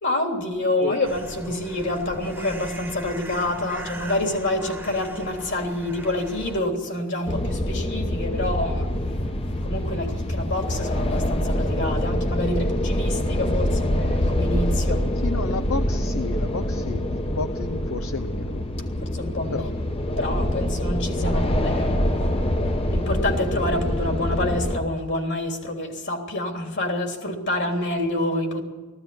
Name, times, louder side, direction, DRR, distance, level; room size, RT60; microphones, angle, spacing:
voice 1, 0.0-8.9 9.6-15.1 19.0-19.7 20.2-21.9 22.9-28.6, left 1 dB, 55° left, 3.3 m, -27 dB
sound 1, 1.0-6.6, right 1 dB, 10° right, 1.3 m, -39 dB
sound 2, 7.3-24.8, left 1 dB, 25° left, 1.0 m, -25 dB
voice 2, 15.2-18.6 19.5-19.7, left 3 dB, 80° left, 0.8 m, -31 dB
19.0 x 15.5 x 9.6 m
head